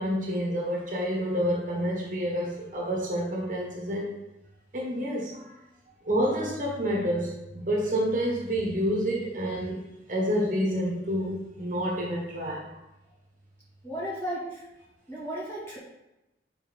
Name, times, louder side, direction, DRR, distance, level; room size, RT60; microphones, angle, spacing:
voice 1, 0.0-4.1 4.7-5.5 6.0-9.8 10.1-12.7, equal, 45° right, -3 dB, 1.4 m, -28 dB
voice 2, 13.8-14.6 15.1-15.8, equal, 15° left, -7 dB, 2.1 m, -34 dB
6.9 x 5.1 x 3.6 m, 0.95 s
head